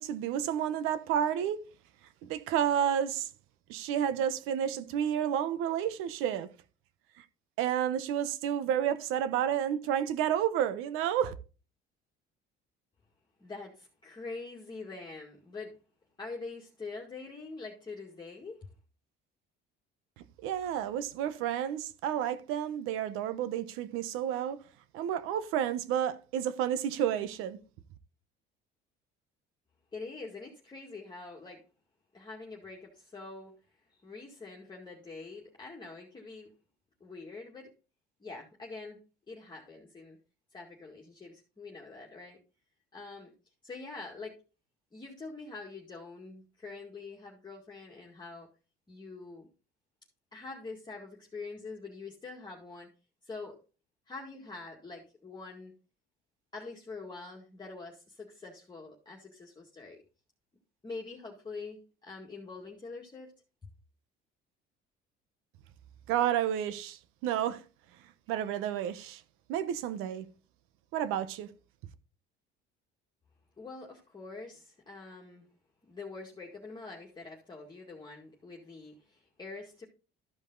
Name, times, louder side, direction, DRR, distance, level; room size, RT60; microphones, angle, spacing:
voice 1, 0.0-1.6 2.2-3.3 3.7-6.5 7.2-7.3 7.6-11.3 20.4-24.6 24.9-27.6 66.1-67.6 68.3-69.2 69.5-70.3 70.9-71.5, right 10 dB, 85° right, 1.0 m, -30 dB
voice 2, 13.4-15.8 16.2-18.7 29.9-31.6 32.1-33.5 33.9-36.5 37.0-37.7 38.2-39.0 39.3-40.2 40.5-42.4 42.9-43.3 43.6-44.4 44.9-48.5 48.9-49.5 50.3-52.9 53.2-53.6 54.1-55.7 56.5-60.0 60.8-63.3 73.6-75.5 75.9-79.8, left 3 dB, 20° left, 2.0 m, -45 dB
13.0 x 5.4 x 3.9 m
cardioid pair, 110°, 21 cm